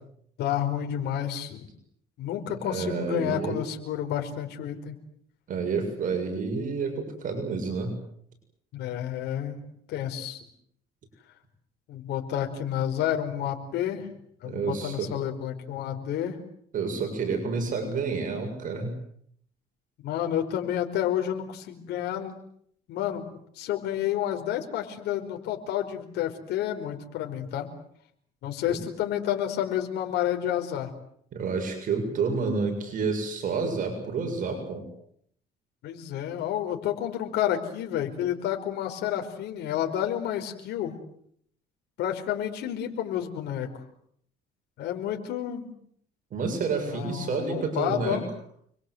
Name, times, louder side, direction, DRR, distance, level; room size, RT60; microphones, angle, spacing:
voice 1, 0.4-1.7 2.2-4.9 8.7-10.4 11.9-14.1 14.4-16.4 20.0-22.4 22.9-23.2 23.5-27.7 28.4-30.9 35.8-40.9 42.0-43.7 44.8-45.7 46.9-48.2, left 11 dB, 80° left, 4 dB, 5.0 m, -30 dB
voice 2, 2.6-3.6 5.5-7.9 14.4-15.1 16.7-18.9 28.7-28.8 31.3-34.8 46.3-48.2, right 4 dB, 50° right, 4 dB, 7.3 m, -29 dB
29.5 x 23.0 x 8.1 m, 0.68 s
cardioid pair, 110°, 17 cm